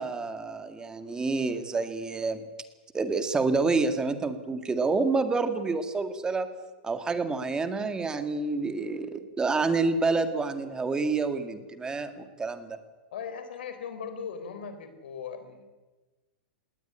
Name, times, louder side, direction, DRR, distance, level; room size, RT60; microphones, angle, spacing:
voice 1, 0.0-2.4 2.9-6.5 6.8-12.8, right 3 dB, 15° right, 9 dB, 1.9 m, -28 dB
voice 2, 13.1-15.6, left 6 dB, 80° left, 10 dB, 4.2 m, -38 dB
19.5 x 18.0 x 10.0 m, 1.2 s
hypercardioid pair, 130°, 5 cm